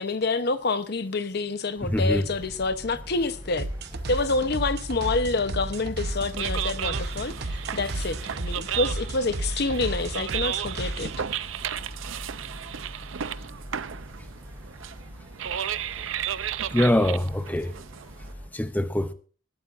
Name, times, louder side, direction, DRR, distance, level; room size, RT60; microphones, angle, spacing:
voice 1, 0.0-3.7 4.1-11.1, left 3 dB, 55° left, 0.8 m, -27 dB
voice 2, 1.8-2.3 16.7-17.7 18.5-19.1, left 1 dB, 10° left, 0.6 m, -23 dB
sound 1, 1.8-18.5, equal, 15° right, 5.4 m, -42 dB
sound 2, 3.6-11.2, right 2 dB, 55° right, 0.9 m, -33 dB
sound 3, 6.1-18.3, right 9 dB, 75° right, 0.5 m, -34 dB
19.5 x 12.5 x 2.6 m
head